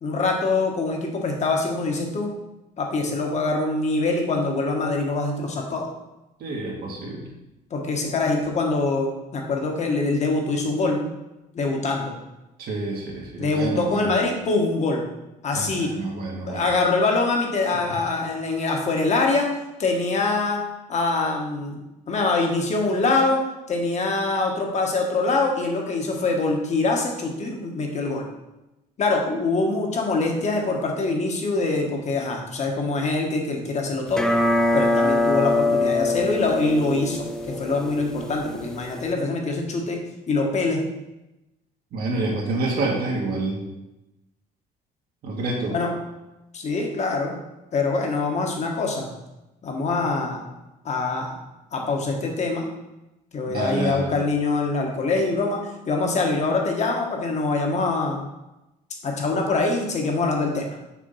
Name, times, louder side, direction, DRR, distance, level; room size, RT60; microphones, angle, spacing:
voice 1, 0.0-2.3 2.8-5.9 7.7-11.0 11.5-12.1 13.4-15.0 15.4-15.9 16.4-19.5 19.8-20.6 20.9-21.8 22.1-23.4 23.7-28.2 29.0-34.3 34.7-40.0 40.3-40.8 45.7-45.9 46.5-47.4 47.7-49.1 49.6-50.4 50.8-51.4 51.7-52.7 53.3-58.2 59.0-60.6, left 3 dB, 40° left, 1 dB, 1.4 m, -24 dB
voice 2, 6.4-7.3 12.6-14.1 15.5-16.7 17.9-18.0 41.9-43.6 45.2-45.8 53.5-54.1, right 2 dB, 65° right, -2 dB, 1.7 m, -28 dB
sound 1, 34.1-39.1, left 2 dB, 5° left, 0.4 m, -23 dB
6.0 x 3.6 x 5.6 m, 0.97 s
cardioid pair, 110°, 17 cm